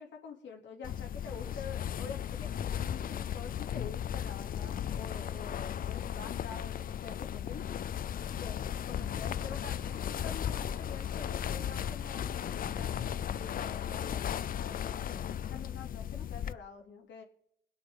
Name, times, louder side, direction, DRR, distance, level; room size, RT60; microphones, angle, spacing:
voice 1, 0.0-7.7 8.3-15.2 15.5-17.2, left 5 dB, 65° left, 1 dB, 2.8 m, -47 dB
sound 1, 0.8-16.5, left 9 dB, 45° left, 0.5 m, -36 dB
sound 2, 8.6-13.5, left 2 dB, 15° left, 1.1 m, -52 dB
21.0 x 8.5 x 3.8 m, 0.76 s
cardioid pair, 90°, 20 cm